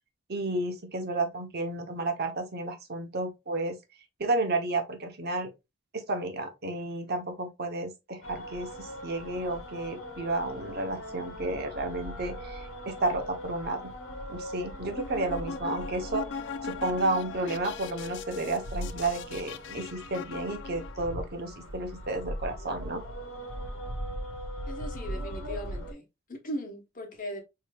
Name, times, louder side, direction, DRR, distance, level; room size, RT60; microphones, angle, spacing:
voice 1, 0.3-3.8 4.2-5.5 5.9-13.9 14.3-16.2 16.6-23.0, right 2 dB, 55° right, 0.8 m, -32 dB
sound 1, 8.2-25.9, equal, 80° left, 1.1 m, -40 dB
sound 2, 14.8-21.1, left 5 dB, 65° left, 0.3 m, -40 dB
voice 2, 24.6-27.4, equal, 45° left, 1.0 m, -38 dB
5.0 x 2.8 x 2.3 m
head